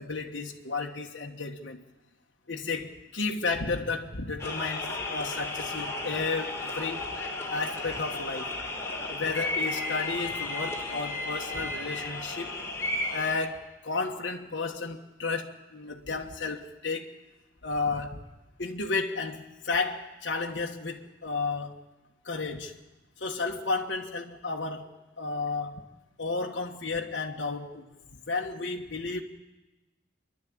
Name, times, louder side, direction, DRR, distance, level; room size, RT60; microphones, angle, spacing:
voice 1, 0.0-1.8 2.5-7.1 7.5-8.5 9.1-12.5 13.1-17.1 17.6-18.3 18.6-21.8 22.2-22.8 23.2-24.9 25.2-25.8 26.2-27.9 28.1-29.2, left 3 dB, 65° left, -1 dB, 1.4 m, -32 dB
sound 1, 4.4-13.3, left 2 dB, 15° left, 3.2 m, -34 dB
28.5 x 11.5 x 8.7 m, 1.1 s
head